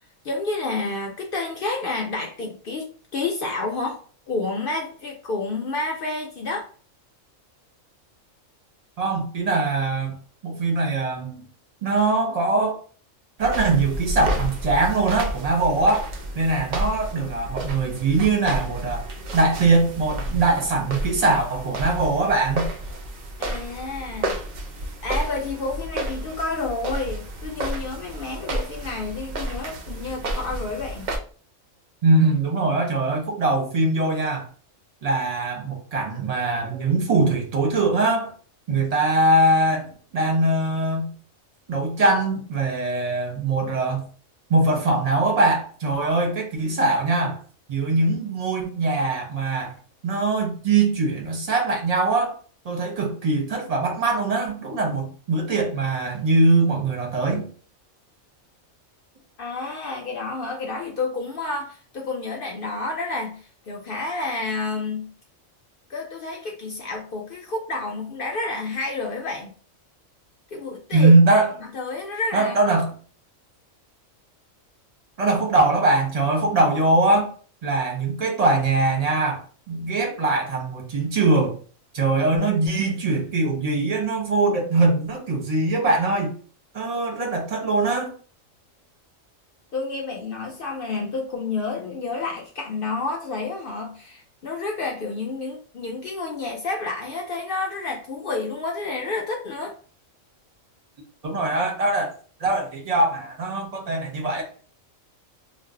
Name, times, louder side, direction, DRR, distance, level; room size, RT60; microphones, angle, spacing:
voice 1, 0.2-6.7 23.4-24.4 25.0-31.1 59.4-65.1 65.9-69.5 70.5-71.4 71.7-72.6 89.7-99.8, left 3 dB, 65° left, 1 dB, 0.5 m, -30 dB
voice 2, 9.0-10.2 10.4-11.5 11.8-12.8 13.4-16.1 16.3-19.1 19.3-22.7 32.0-34.5 35.0-38.3 38.7-41.1 41.7-44.1 44.5-47.4 47.7-49.7 50.0-52.3 52.6-57.5 70.9-71.5 72.3-72.9 75.2-77.3 77.6-79.4 79.7-81.6 81.9-86.3 86.7-88.1 101.2-102.1 102.4-104.4, right 2 dB, 40° right, 1 dB, 0.6 m, -22 dB
sound 1, 13.4-31.2, right 1 dB, 80° right, 0.4 m, -31 dB
2.5 x 2.0 x 3.6 m, 0.41 s
omnidirectional pair, 1.4 m